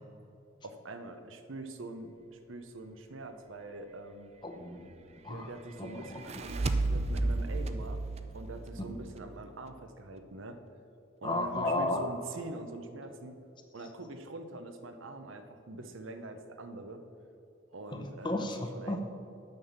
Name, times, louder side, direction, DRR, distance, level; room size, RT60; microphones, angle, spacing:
voice 1, 0.6-4.3 5.3-8.0 8.3-10.6 11.2-13.4 13.7-17.0 17.7-18.5 18.7-19.0, right 2 dB, 75° right, 8 dB, 0.8 m, -44 dB
voice 2, 4.4-5.5 5.8-6.3 11.2-12.1 17.9-19.0, left 2 dB, 20° left, 4 dB, 0.8 m, -34 dB
sound 1, 6.0-9.4, right 2 dB, 30° right, 0.4 m, -33 dB
9.1 x 5.7 x 7.1 m, 2.8 s
head